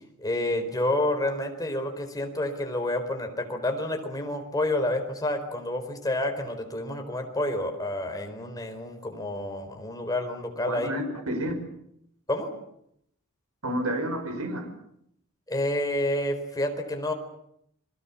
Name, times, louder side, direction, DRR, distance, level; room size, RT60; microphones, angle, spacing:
voice 1, 0.2-10.9 12.3-12.5 15.5-17.1, left 1 dB, 15° left, 4 dB, 4.5 m, -29 dB
voice 2, 10.7-11.6 13.6-14.7, right 1 dB, 75° right, 6 dB, 5.2 m, -30 dB
30.0 x 21.5 x 7.3 m, 0.73 s
head